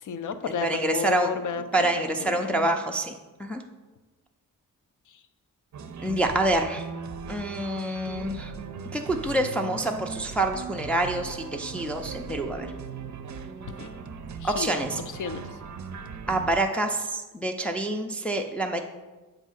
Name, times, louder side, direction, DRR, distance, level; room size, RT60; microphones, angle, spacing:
voice 1, 0.0-1.9 2.2-2.7 13.8-13.9 14.4-14.8 15.2-15.4, left 5 dB, 60° left, 10 dB, 0.5 m, -32 dB
voice 2, 0.6-1.3 1.7-3.1 3.4-3.6 6.0-6.9 7.3-8.5 8.9-12.7 14.4-15.0 16.3-18.8, right 1 dB, 5° left, 3 dB, 0.3 m, -27 dB
sound 1, 5.7-16.6, right 5 dB, 55° right, 0.5 m, -38 dB
8.0 x 2.7 x 5.7 m, 1.2 s
wide cardioid pair, 130°, 34 cm